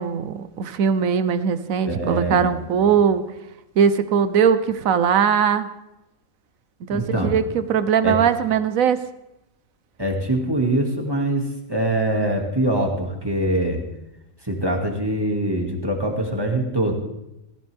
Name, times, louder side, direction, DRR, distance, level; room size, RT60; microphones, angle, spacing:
voice 1, 0.0-3.2 3.8-5.7 6.9-9.0, right 7 dB, 85° right, 12 dB, 1.3 m, -20 dB
voice 2, 1.8-2.9 6.9-7.3 8.0-8.2 10.0-13.8 14.4-16.9, right 1 dB, 15° right, 1 dB, 2.2 m, -23 dB
18.5 x 15.0 x 3.5 m, 0.90 s
omnidirectional pair, 1.4 m